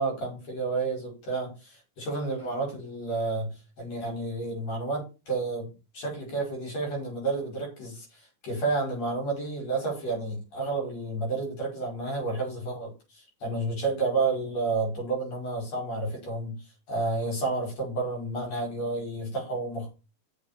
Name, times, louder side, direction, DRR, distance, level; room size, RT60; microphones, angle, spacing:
voice 1, 0.0-5.7 5.9-19.9, right 3 dB, 60° left, 0 dB, 6.4 m, -31 dB
7.6 x 7.1 x 6.9 m, 0.31 s
omnidirectional pair, 3.3 m